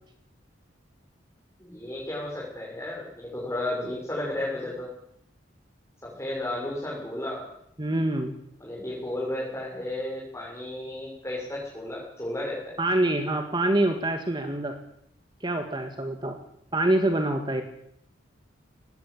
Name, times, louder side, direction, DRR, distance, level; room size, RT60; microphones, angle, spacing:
voice 1, 1.6-4.9 6.0-7.4 8.6-12.8, left 1 dB, 15° left, -5 dB, 6.6 m, -33 dB
voice 2, 7.8-8.3 12.8-14.8 15.4-16.4 16.7-17.6, right 1 dB, 25° right, 6 dB, 1.8 m, -25 dB
19.5 x 16.0 x 8.6 m, 0.73 s
head